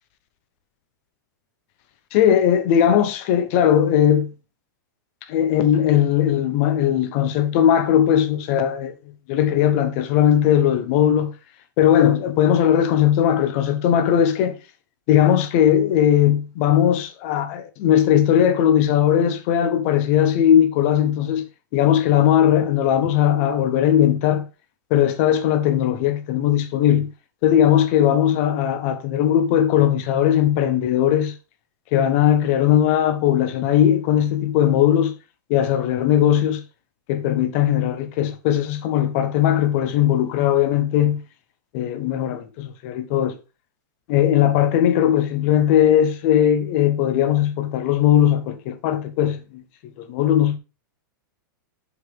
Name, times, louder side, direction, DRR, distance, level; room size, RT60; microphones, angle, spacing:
voice 1, 2.1-4.3 5.3-8.9 9.3-11.3 11.8-14.6 15.1-21.4 21.7-24.5 24.9-27.1 27.4-31.3 31.9-35.1 35.5-36.6 37.1-41.2 41.7-43.3 44.1-49.6 50.0-50.6, left 10 dB, 40° left, 0.9 m, -18 dB
6.2 x 5.2 x 3.6 m
supercardioid pair, 155°, 11 cm